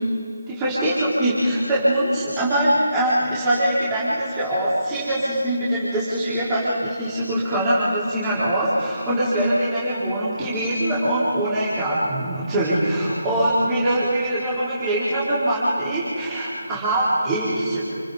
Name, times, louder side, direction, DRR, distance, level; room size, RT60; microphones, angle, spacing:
voice 1, 0.6-17.8, right 1 dB, 15° right, -10 dB, 4.3 m, -22 dB
29.5 x 28.5 x 4.1 m, 2.3 s
figure-of-eight pair, 160°, 0 cm